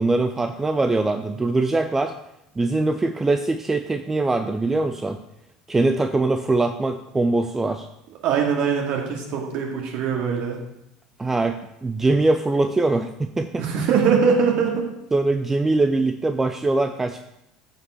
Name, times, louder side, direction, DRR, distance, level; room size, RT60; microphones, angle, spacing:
voice 1, 0.0-2.1 2.6-5.2 5.7-7.9 11.2-13.6 15.1-17.2, right 2 dB, 15° right, 8 dB, 0.5 m, -22 dB
voice 2, 8.2-10.6 13.6-14.9, right 6 dB, 50° right, 0 dB, 2.3 m, -22 dB
14.0 x 5.0 x 4.8 m, 0.84 s
figure-of-eight pair, 70°, 2 cm